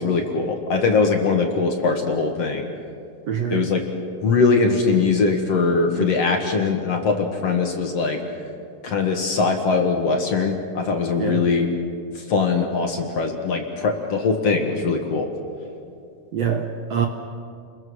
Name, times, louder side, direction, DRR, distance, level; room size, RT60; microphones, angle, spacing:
voice 1, 0.0-2.7 3.5-3.8 4.2-8.2 8.8-11.7 12.3-15.3, left 4 dB, 50° left, 3 dB, 2.3 m, -21 dB
voice 2, 3.3-3.7 6.0-6.1 11.2-11.5 16.3-17.1, right 8 dB, 65° right, 3 dB, 1.7 m, -25 dB
30.0 x 22.0 x 6.4 m, 2.4 s
omnidirectional pair, 4.2 m